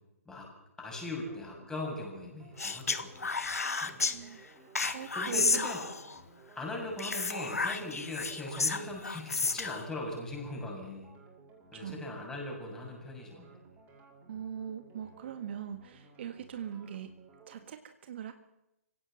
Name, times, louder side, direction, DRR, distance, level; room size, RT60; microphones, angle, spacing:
voice 1, 0.8-3.3 3.8-4.0 5.2-5.8 6.6-11.1 11.7-13.5, left 1 dB, 5° left, 0 dB, 6.8 m, -39 dB
sound 1, 0.8-17.6, right 3 dB, 20° right, 5.9 m, -58 dB
Speech, 2.6-4.2 4.8-6.2 7.0-9.9, left 4 dB, 75° left, 1.7 m, -32 dB
voice 2, 3.9-5.7 11.7-12.2 14.3-17.1 17.5-18.3, right 9 dB, 45° right, 9 dB, 1.6 m, -42 dB
26.0 x 16.5 x 7.7 m, 0.88 s
figure-of-eight pair, 130°, 8 cm